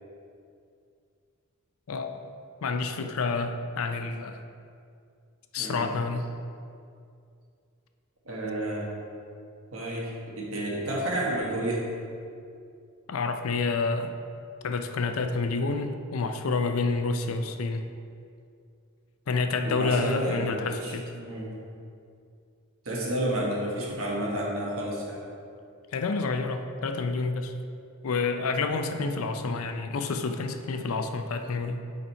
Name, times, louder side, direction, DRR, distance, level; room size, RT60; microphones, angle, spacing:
voice 1, 1.9-2.2 2.6-4.4 5.5-6.3 13.1-14.1 14.6-17.8 19.3-21.0 25.9-27.5 28.0-31.8, left 4 dB, 90° left, 7 dB, 0.5 m, -29 dB
voice 2, 5.6-5.9 8.2-8.9 9.7-11.9 19.6-21.5 22.8-25.2, right 1 dB, 80° right, -3 dB, 1.4 m, -31 dB
7.0 x 4.1 x 4.3 m, 2.4 s
head